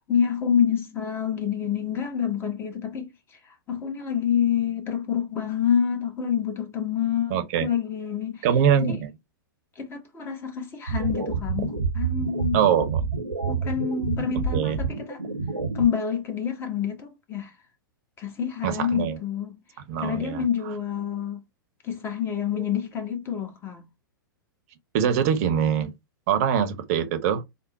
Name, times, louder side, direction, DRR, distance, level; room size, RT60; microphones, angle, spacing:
voice 1, 0.0-3.1 3.7-8.5 8.8-8.9 9.8-12.6 13.5-15.2 15.7-17.5 18.2-19.6 20.0-21.4 21.8-23.8, left 8 dB, 20° left, 1.1 m, -27 dB
voice 2, 7.3-7.7 8.4-9.1 12.5-13.1 14.5-14.8 18.6-19.2 19.9-20.4 22.5-22.7 24.9-25.9 26.3-27.4, right 8 dB, 45° right, 0.8 m, -23 dB
sound 1, 10.9-15.9, right 5 dB, 90° right, 1.0 m, -28 dB
3.5 x 2.1 x 4.2 m
figure-of-eight pair, 105°, 11 cm